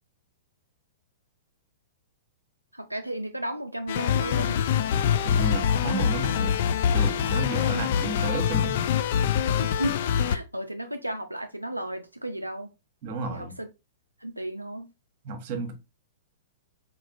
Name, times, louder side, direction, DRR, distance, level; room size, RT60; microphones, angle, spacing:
voice 1, 2.7-4.6 9.6-12.7 13.3-13.7 14.2-14.9, right 1 dB, 85° right, 0.4 m, -34 dB
sound 1, 3.9-10.4, left 8 dB, 50° left, 0.3 m, -24 dB
voice 2, 5.2-6.6 6.9-8.8 13.0-13.6 15.2-15.7, right 3 dB, 40° right, 1.1 m, -32 dB
4.1 x 3.5 x 2.4 m
figure-of-eight pair, 105°, 0 cm